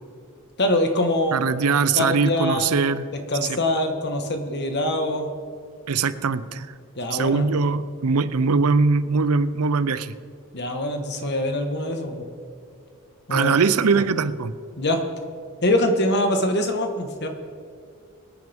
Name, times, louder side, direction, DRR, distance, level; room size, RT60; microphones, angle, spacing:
voice 1, 0.6-1.4 1.9-2.8 3.3-5.3 7.0-7.5 10.5-12.3 13.3-13.5 13.9-14.0 14.8-15.0 15.6-17.3, left 1 dB, 50° left, 5 dB, 1.4 m, -23 dB
voice 2, 1.3-3.1 3.4-3.6 5.9-6.7 7.1-10.1 13.3-14.5, right 4 dB, 80° right, 14 dB, 0.6 m, -21 dB
24.0 x 9.5 x 3.6 m, 2.3 s
head